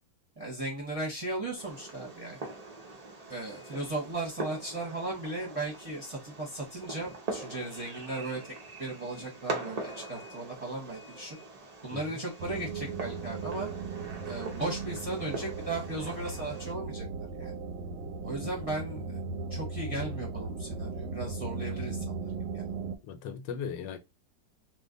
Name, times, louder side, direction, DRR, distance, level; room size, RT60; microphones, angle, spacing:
voice 1, 0.4-2.4 3.3-8.4 8.8-11.4 11.8-13.7 14.2-17.1 17.4-17.5 18.2-19.2 19.5-22.6, right 2 dB, 25° right, 0.8 m, -36 dB
Fireworks, 1.6-16.7, right 3 dB, 70° right, 0.3 m, -42 dB
sound 1, 12.4-23.0, right 4 dB, 85° right, 1.3 m, -37 dB
voice 2, 23.0-24.0, left 7 dB, 85° left, 1.3 m, -38 dB
3.2 x 2.3 x 3.7 m
omnidirectional pair, 1.9 m